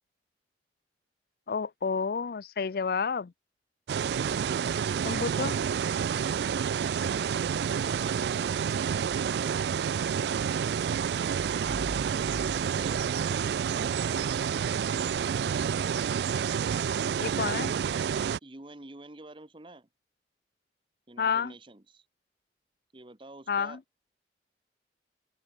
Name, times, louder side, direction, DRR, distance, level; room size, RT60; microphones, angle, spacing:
voice 1, 1.5-3.3 5.0-5.5 17.2-17.7 21.2-21.5 23.5-23.8, left 5 dB, 55° left, 0.4 m, -30 dB
sound 1, 3.9-18.4, right 7 dB, 65° right, 0.3 m, -29 dB
sound 2, 11.6-14.2, equal, 15° left, 4.7 m, -44 dB
voice 2, 18.4-19.9 21.1-22.1 22.9-23.8, right 2 dB, 30° right, 1.2 m, -49 dB
open air
head